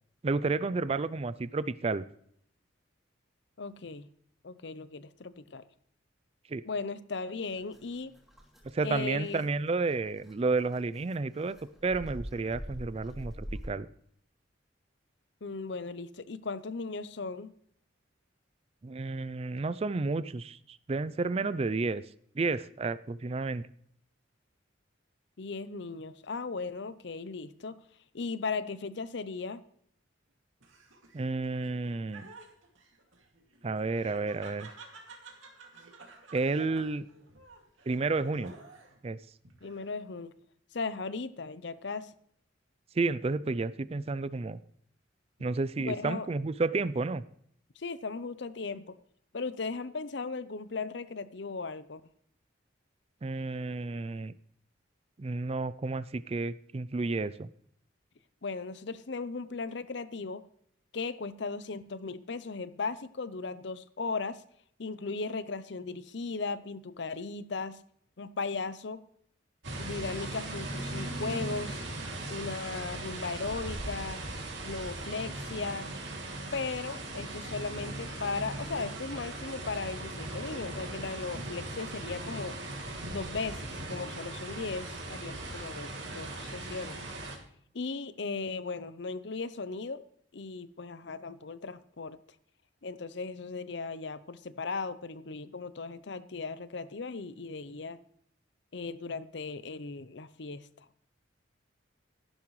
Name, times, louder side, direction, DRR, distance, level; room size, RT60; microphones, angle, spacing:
voice 1, 0.2-2.0 6.5-6.6 8.7-11.6 11.8-13.9 18.8-22.0 22.3-23.6 31.1-32.3 33.6-34.7 36.3-37.0 37.9-38.5 39.0-39.2 43.0-44.6 45.4-47.2 53.2-54.3 55.2-57.5, right 3 dB, 30° right, 16 dB, 0.4 m, -31 dB
voice 2, 3.6-4.1 4.4-5.6 6.6-8.1 8.8-9.5 15.4-17.5 25.4-27.8 28.1-29.6 39.6-40.3 40.7-42.1 45.8-46.3 47.8-48.9 49.3-52.0 58.4-60.4 60.9-64.4 64.8-67.8 68.2-69.0 69.8-71.8 72.3-74.2 74.6-75.9 76.5-82.6 83.1-87.1 87.7-90.0 90.3-92.2 92.8-98.0 98.7-100.9, left 4 dB, 60° left, 14 dB, 0.7 m, -37 dB
sound 1, 7.5-13.7, equal, ahead, 2.9 m, -45 dB
Laughter, 30.6-39.0 39.4-40.1, right 4 dB, 85° right, 2.4 m, -52 dB
sound 2, 69.6-87.4, right 2 dB, 65° right, 2.8 m, -39 dB
14.0 x 12.0 x 3.2 m, 0.66 s
head